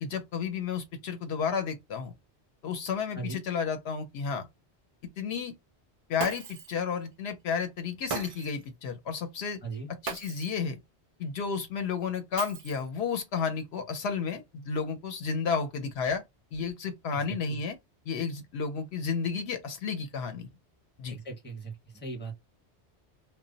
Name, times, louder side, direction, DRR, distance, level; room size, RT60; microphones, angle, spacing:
voice 1, 0.0-2.1 2.6-4.5 5.2-5.5 6.1-9.6 10.0-10.8 11.2-16.2 16.5-17.8 18.1-20.5 21.0-21.2, left 6 dB, 70° left, 0.8 m, -32 dB
Shatter, 6.2-6.8 8.1-8.7 10.1-10.6 12.4-13.0, right 5 dB, 70° right, 0.3 m, -38 dB
voice 2, 17.1-17.6 21.1-22.4, right 3 dB, 10° left, 0.7 m, -39 dB
2.1 x 2.0 x 3.7 m
omnidirectional pair, 1.1 m